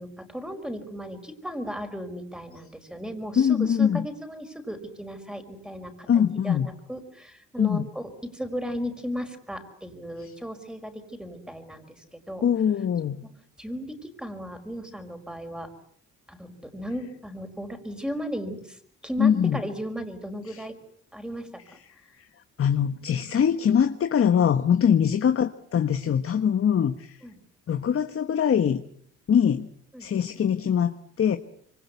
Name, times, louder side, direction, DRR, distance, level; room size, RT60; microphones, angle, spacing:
voice 1, 0.0-6.1 6.4-12.4 13.2-13.3 13.6-15.7 16.3-20.7 21.1-21.6 27.2-27.4 29.9-30.1, equal, 5° right, 7 dB, 4.9 m, -36 dB
voice 2, 3.4-4.0 6.1-6.7 7.6-7.9 10.2-10.3 12.4-13.3 19.2-19.6 20.5-20.6 22.2-22.3 22.6-27.2 27.7-28.8 29.3-29.7 30.0-31.4, left 8 dB, 45° left, 9 dB, 1.3 m, -23 dB
26.0 x 24.0 x 8.3 m, 0.66 s
cardioid pair, 90°, 30 cm